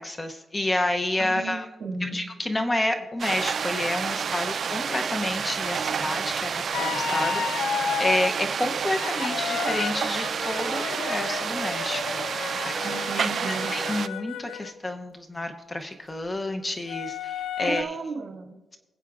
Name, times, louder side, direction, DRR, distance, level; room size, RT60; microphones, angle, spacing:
voice 1, 0.0-1.6 2.0-12.0 12.3-17.9, left 1 dB, 20° left, 6 dB, 0.6 m, -30 dB
voice 2, 1.2-2.2 4.5-4.6 12.8-13.7 17.6-18.6, right 4 dB, 70° right, 1 dB, 1.9 m, -34 dB
sound 1, 3.2-14.1, right 6 dB, 50° right, 0.3 m, -29 dB
sound 2, 6.7-8.3 8.8-14.7 16.9-17.8, left 8 dB, 80° left, 0.3 m, -32 dB
20.5 x 8.1 x 2.4 m, 1.1 s
wide cardioid pair, 135°, 0 cm